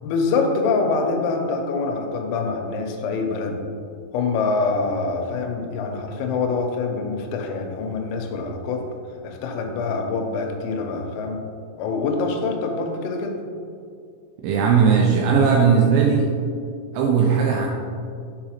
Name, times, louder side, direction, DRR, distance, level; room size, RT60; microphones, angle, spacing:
voice 1, 0.0-3.6 4.1-8.8 9.2-11.4 11.8-13.4, left 4 dB, 85° left, 3 dB, 3.3 m, -25 dB
voice 2, 14.4-16.3 16.9-17.7, right 6 dB, 85° right, -1 dB, 2.7 m, -17 dB
7.3 x 4.8 x 2.9 m, 2.3 s
omnidirectional pair, 5.8 m